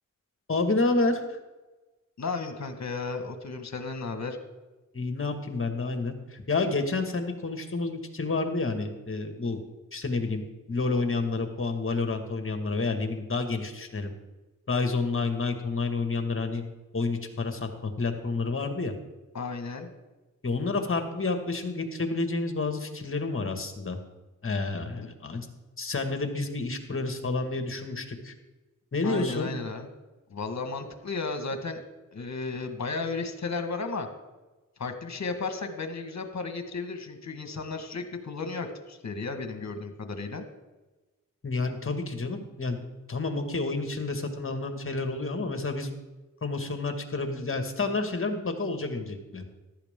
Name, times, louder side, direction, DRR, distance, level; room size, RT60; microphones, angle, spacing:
voice 1, 0.5-1.4 4.9-9.6 9.9-10.4 10.7-14.1 14.7-16.6 16.9-18.9 20.4-24.0 24.4-25.5 25.8-28.3 28.9-29.5 41.4-42.8 43.1-45.9 46.4-49.4, left 3 dB, 40° left, 5 dB, 2.0 m, -29 dB
voice 2, 2.2-4.4 19.3-19.9 29.0-29.9 30.3-31.8 32.1-34.1 34.8-40.4, left 4 dB, 55° left, 6 dB, 1.7 m, -34 dB
14.5 x 11.5 x 3.8 m, 1.1 s
cardioid pair, 60°, 33 cm